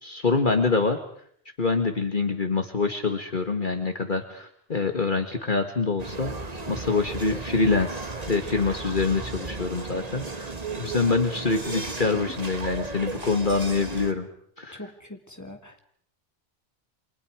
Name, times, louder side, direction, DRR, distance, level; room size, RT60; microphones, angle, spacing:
voice 1, 0.0-1.0 1.6-6.3 6.7-14.3 14.6-14.8, left 4 dB, 50° left, 6 dB, 1.9 m, -25 dB
sound 1, 6.0-14.1, right 3 dB, 35° right, 1.7 m, -35 dB
voice 2, 14.7-15.8, left 1 dB, 15° left, 4 dB, 2.7 m, -42 dB
29.5 x 25.5 x 4.9 m, 0.63 s
omnidirectional pair, 1.1 m